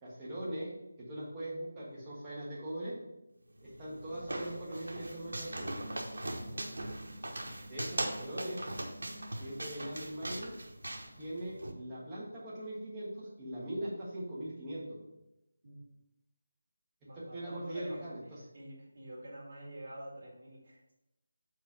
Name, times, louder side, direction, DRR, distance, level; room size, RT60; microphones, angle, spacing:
voice 1, 0.0-3.0 3.6-5.7 7.7-8.6 9.4-10.5 11.2-15.0 17.1-18.4, right 1 dB, 10° right, -8 dB, 1.5 m, -41 dB
sound 1, 3.5-11.7, right 1 dB, 90° right, 1.1 m, -40 dB
voice 2, 17.1-18.0 18.5-20.9, right 1 dB, 45° right, -5 dB, 2.4 m, -47 dB
4.8 x 4.5 x 5.4 m, 0.89 s
figure-of-eight pair, 175°, 0 cm